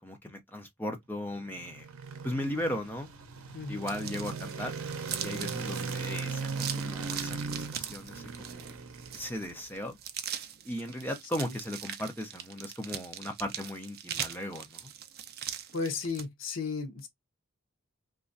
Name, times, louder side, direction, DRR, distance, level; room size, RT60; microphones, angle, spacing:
voice 1, 0.0-1.9 2.2-3.1 3.7-4.7 5.2-8.7 9.1-10.0 10.6-14.9, left 1 dB, 10° left, 0.5 m, -37 dB
sound 1, 1.3-9.7, right 4 dB, 90° right, 0.6 m, -38 dB
voice 2, 3.5-3.9 15.7-17.1, left 4 dB, 70° left, 0.7 m, -34 dB
sound 2, 3.9-16.2, right 9 dB, 45° right, 0.3 m, -41 dB
3.0 x 2.3 x 2.5 m
head